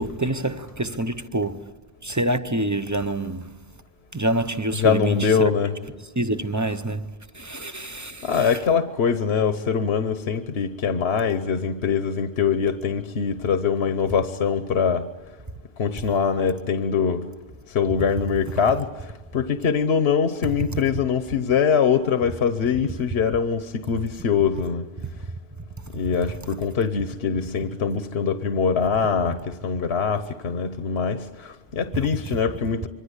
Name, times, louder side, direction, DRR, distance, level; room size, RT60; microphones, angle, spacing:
voice 1, 0.0-1.7 2.0-3.5 4.1-5.5 6.2-8.5 20.7-20.8, right 1 dB, 20° right, 0.8 m, -27 dB
voice 2, 4.8-5.8 8.2-15.1 15.8-17.3 17.7-24.9 25.9-32.9, left 6 dB, 70° left, 1.3 m, -23 dB
26.5 x 23.5 x 8.2 m
omnidirectional pair, 1.1 m